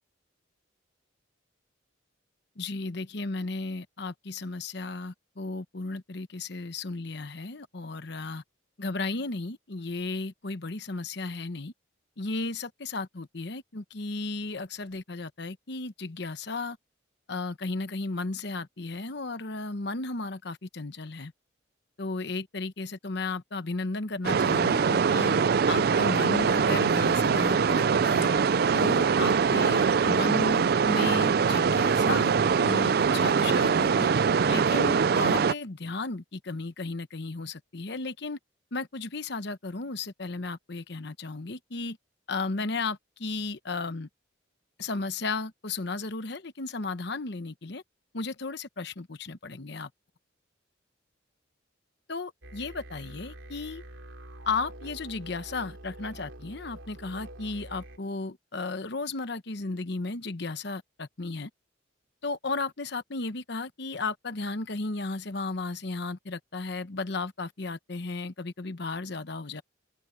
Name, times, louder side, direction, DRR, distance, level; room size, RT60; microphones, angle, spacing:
voice 1, 2.6-8.4 8.8-11.7 12.2-16.8 17.3-21.3 22.0-25.4 25.7-28.3 28.7-34.1 34.5-38.4 38.7-42.0 42.3-44.1 44.8-47.8 48.1-49.9 52.1-53.8 54.5-61.5 62.2-69.6, left 3 dB, 60° left, 1.0 m, -34 dB
sound 1, 24.2-35.5, right 6 dB, 50° right, 0.4 m, -23 dB
sound 2, 52.4-58.0, right 1 dB, 90° right, 3.1 m, -45 dB
head